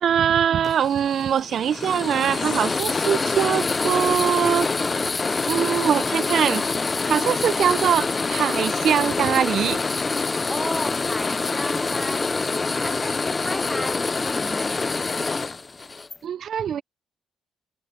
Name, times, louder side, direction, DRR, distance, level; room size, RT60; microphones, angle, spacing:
voice 1, 0.0-5.1 5.5-6.6 7.1-9.8 16.2-16.8, right 9 dB, 60° right, 0.4 m, -22 dB
sound 1, 0.6-16.2, left 4 dB, 30° left, 0.5 m, -25 dB
sound 2, 2.3-13.0 13.4-13.7, left 12 dB, 80° left, 4.1 m, -54 dB
voice 2, 10.5-14.9, left 1 dB, 5° left, 0.9 m, -34 dB
cardioid pair, 90°, 0 cm